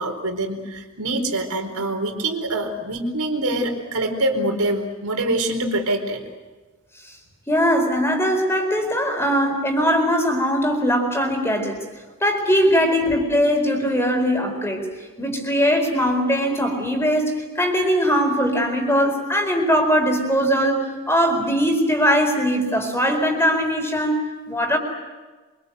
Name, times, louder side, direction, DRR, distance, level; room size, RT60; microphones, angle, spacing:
voice 1, 0.0-6.2, right 1 dB, 90° right, 4 dB, 4.4 m, -25 dB
voice 2, 7.5-11.8 12.2-14.8 15.2-24.8, equal, 10° left, 4 dB, 4.4 m, -20 dB
25.5 x 25.0 x 8.1 m, 1.3 s
head